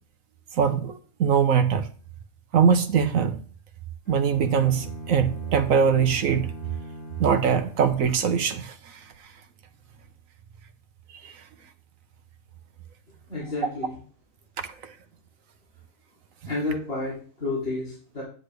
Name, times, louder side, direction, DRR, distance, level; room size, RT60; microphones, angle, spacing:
voice 1, 0.5-1.9 2.5-3.4 4.1-6.5 7.2-9.1 11.2-11.4 14.8-14.9, right 7 dB, 75° right, 9 dB, 1.3 m, -22 dB
Bowed string instrument, 4.0-8.1, right 1 dB, 65° left, 5.0 m, -40 dB
voice 2, 13.3-13.9 16.5-18.2, left 2 dB, 45° left, -7 dB, 3.4 m, -30 dB
9.7 x 8.4 x 3.4 m, 0.42 s
omnidirectional pair, 1.4 m